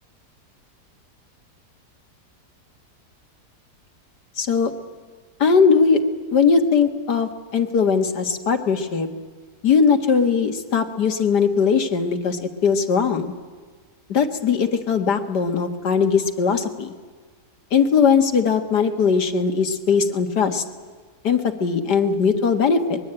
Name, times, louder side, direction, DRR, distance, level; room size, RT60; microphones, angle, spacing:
voice 1, 4.4-4.7 5.4-6.0 6.3-9.1 9.6-13.3 14.1-16.9 17.7-20.6 21.2-23.0, left 6 dB, 75° left, 6 dB, 2.3 m, -19 dB
24.0 x 21.5 x 8.9 m, 1.5 s
omnidirectional pair, 1.8 m